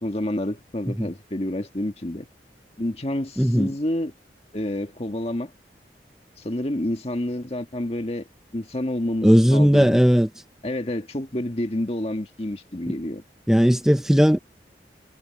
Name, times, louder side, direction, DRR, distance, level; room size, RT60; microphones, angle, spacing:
voice 1, 0.0-2.3 2.8-4.1 4.5-5.5 6.4-8.3 8.5-10.0 10.6-13.2, left 1 dB, 35° left, 1.8 m, -28 dB
voice 2, 3.4-3.7 9.2-10.3 13.5-14.4, equal, 5° right, 0.7 m, -17 dB
head